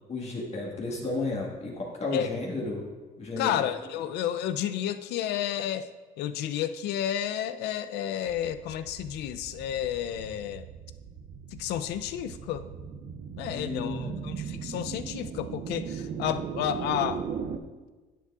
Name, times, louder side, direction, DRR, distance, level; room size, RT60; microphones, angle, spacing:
voice 1, 0.1-2.8 3.2-3.6 13.5-14.3, left 2 dB, 40° left, -2 dB, 1.6 m, -33 dB
voice 2, 3.4-5.9 6.2-10.7 11.5-12.7 13.4-17.2, left 10 dB, 80° left, 11 dB, 0.4 m, -31 dB
sound 1, 8.3-17.6, right 7 dB, 60° right, 0.6 m, -38 dB
10.5 x 7.3 x 2.4 m, 1.3 s
cardioid pair, 110°, 17 cm